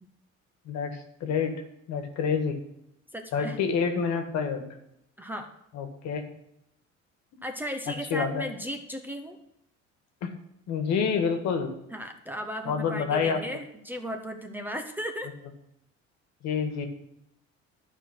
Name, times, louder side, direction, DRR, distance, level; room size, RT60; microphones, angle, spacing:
voice 1, 0.7-1.5 1.9-2.6 3.3-4.7 5.7-6.3 7.9-8.5 10.2-10.3 10.7-11.7 12.7-13.4 16.4-16.9, left 6 dB, 65° left, 7 dB, 1.7 m, -28 dB
voice 2, 3.1-3.6 5.2-5.5 7.4-9.4 11.9-15.3, equal, 5° right, 5 dB, 0.8 m, -36 dB
12.0 x 4.8 x 7.9 m, 0.80 s
cardioid pair, 145°, 30 cm